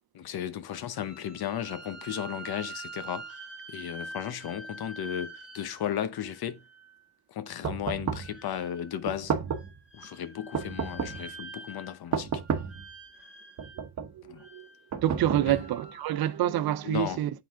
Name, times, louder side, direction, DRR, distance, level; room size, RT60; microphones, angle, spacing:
voice 1, 0.1-3.4 3.7-6.6 7.3-9.3 9.9-12.3 14.3-14.4 15.5-15.6 16.8-17.2, left 10 dB, 65° left, 1.0 m, -35 dB
sound 1, 0.9-7.1 8.2-9.0 9.5-12.1 12.4-13.9 14.4-16.4, right 2 dB, 5° right, 2.2 m, -46 dB
sound 2, 7.6-8.4 9.1-9.8 10.5-11.3 12.1-12.9 13.6-14.2 14.9-15.8, right 6 dB, 45° right, 1.0 m, -32 dB
voice 2, 14.1-14.7 15.0-17.3, right 12 dB, 65° right, 0.6 m, -27 dB
8.9 x 4.1 x 3.6 m
wide cardioid pair, 170°, 40 cm